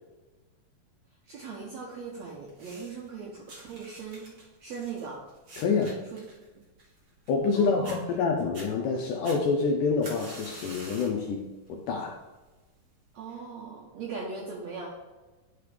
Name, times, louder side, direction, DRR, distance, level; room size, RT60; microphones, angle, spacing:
voice 1, 1.3-4.3 4.6-5.2 6.1-6.2 7.5-8.0 13.1-14.9, right 5 dB, 85° right, -3 dB, 1.5 m, -39 dB
sound 1, 2.5-3.1 3.5-7.5 7.8-8.0 8.4-8.7 9.2-11.2 11.7-12.0 12.8-12.9, right 2 dB, 50° right, 1.5 m, -46 dB
voice 2, 5.6-5.9 7.3-12.2, left 4 dB, 80° left, 1 dB, 1.8 m, -27 dB
11.0 x 4.8 x 3.4 m, 1.2 s
omnidirectional pair, 4.5 m